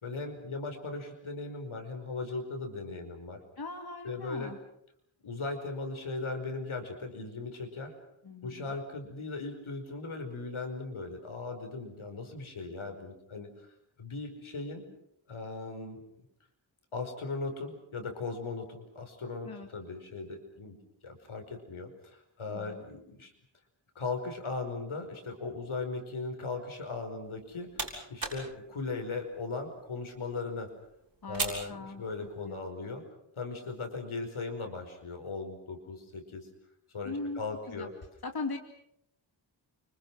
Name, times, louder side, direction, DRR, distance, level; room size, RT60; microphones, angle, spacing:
voice 1, 0.0-3.4 4.0-4.5 5.2-7.9 8.4-13.5 14.0-14.8 15.3-16.0 16.9-20.8 21.0-23.3 24.0-27.7 28.1-30.7 31.3-33.0 33.4-36.5 36.9-37.9, left 3 dB, 90° left, 5 dB, 5.3 m, -38 dB
voice 2, 3.6-4.6 8.2-8.7 19.4-19.7 22.5-22.8 31.2-32.0 32.5-32.6 37.0-37.4 37.7-37.9 38.2-38.6, left 3 dB, 50° left, 4 dB, 2.4 m, -39 dB
sound 1, 27.2-32.6, right 3 dB, 45° right, 7.2 m, -41 dB
29.5 x 25.5 x 6.1 m, 0.74 s
wide cardioid pair, 120°, 47 cm